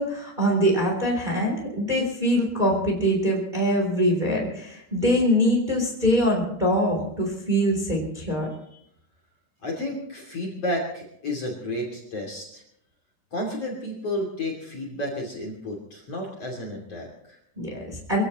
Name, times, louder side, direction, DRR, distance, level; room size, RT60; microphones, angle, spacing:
voice 1, 0.0-8.5 17.6-18.2, equal, 10° right, 0 dB, 3.3 m, -23 dB
voice 2, 9.6-12.6 13.3-17.4, left 1 dB, 40° left, -2 dB, 3.5 m, -31 dB
24.5 x 16.5 x 3.1 m, 0.75 s
omnidirectional pair, 4.9 m